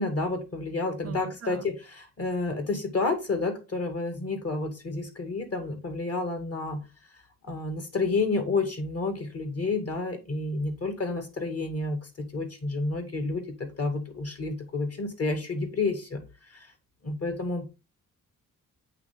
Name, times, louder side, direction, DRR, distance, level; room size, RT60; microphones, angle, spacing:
voice 1, 0.0-6.8 7.5-16.2 16.5-16.7 17.0-17.7, left 3 dB, 40° left, 2.1 m, -30 dB
voice 2, 1.0-1.7, right 9 dB, 40° right, 0.7 m, -41 dB
8.3 x 3.4 x 3.6 m
cardioid pair, 55°, 36 cm